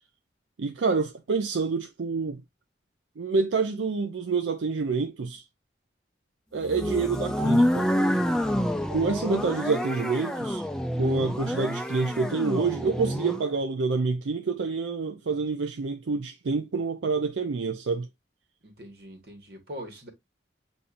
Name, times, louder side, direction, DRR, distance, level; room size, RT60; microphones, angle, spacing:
voice 1, 0.6-2.4 3.2-5.4 6.5-7.9 8.9-10.6 11.0-18.1, right 4 dB, 85° right, 0.5 m, -27 dB
sound 1, 6.6-13.5, equal, 5° left, 0.3 m, -27 dB
voice 2, 18.6-20.1, equal, 55° right, 1.4 m, -42 dB
6.9 x 2.7 x 2.5 m
head